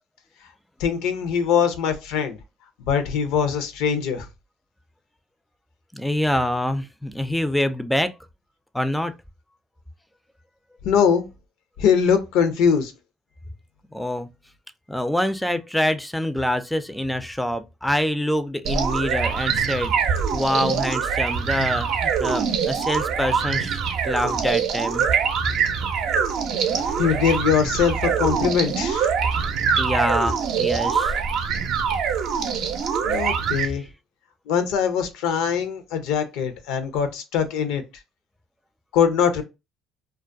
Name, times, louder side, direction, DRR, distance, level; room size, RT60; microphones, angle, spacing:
voice 1, 0.8-2.4 2.8-4.3 10.8-11.3 11.8-12.9 27.0-29.1 33.0-33.8 34.5-37.8 38.9-39.4, left 7 dB, 80° left, 0.5 m, -22 dB
voice 2, 5.9-8.1 8.7-9.1 13.9-14.3 14.9-25.1 26.7-27.1 29.8-31.1 33.6-33.7, left 1 dB, 5° left, 0.3 m, -25 dB
sound 1, 18.6-33.7, right 6 dB, 70° right, 0.5 m, -24 dB
2.3 x 2.2 x 2.5 m
supercardioid pair, 65°, 0 cm